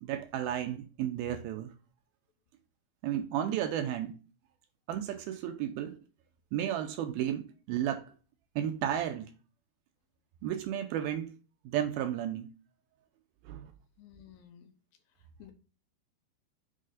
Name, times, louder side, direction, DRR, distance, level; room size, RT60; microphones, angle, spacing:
voice 1, 0.0-1.7 3.0-4.1 4.9-6.0 6.5-8.0 8.6-9.3 10.4-11.3 11.7-12.5 13.5-13.7, right 10 dB, 80° right, 2.3 m, -33 dB
voice 2, 14.0-14.7 15.4-15.5, left 10 dB, 75° left, 2.4 m, -53 dB
6.5 x 4.8 x 5.0 m
omnidirectional pair, 4.7 m